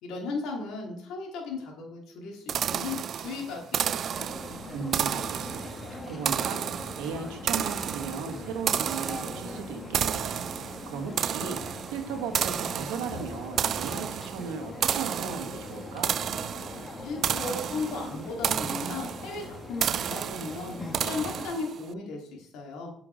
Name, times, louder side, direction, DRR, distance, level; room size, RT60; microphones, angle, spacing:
voice 1, 0.0-4.0 17.0-22.9, left 3 dB, 75° left, 0 dB, 2.6 m, -36 dB
sound 1, 2.5-21.9, right 9 dB, 55° right, 0.3 m, -32 dB
sound 2, 4.1-21.5, left 2 dB, 30° left, 1.5 m, -41 dB
voice 2, 4.7-10.4 10.9-11.6 11.9-16.2, right 6 dB, 85° right, 4 dB, 1.6 m, -36 dB
7.6 x 5.8 x 5.2 m, 0.70 s
supercardioid pair, 75°, 0 cm